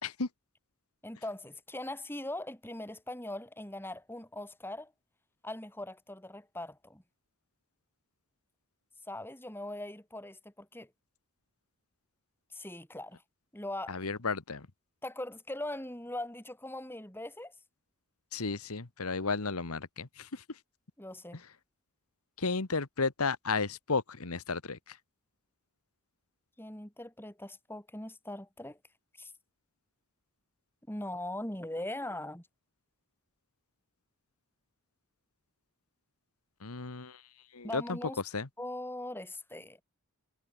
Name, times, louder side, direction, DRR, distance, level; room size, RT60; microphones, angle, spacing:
voice 1, 1.0-4.9 5.4-7.0 9.1-10.9 12.5-13.2 13.5-14.0 15.0-17.5 21.0-21.4 26.6-28.8 29.2-29.3 30.9-32.4 37.6-38.2 38.6-39.8, left 1 dB, 10° left, 3.9 m, -40 dB
voice 2, 13.9-14.7 18.3-20.4 21.3-21.4 22.4-25.0 36.6-37.2 37.5-38.5, left 4 dB, 90° left, 1.4 m, -33 dB
head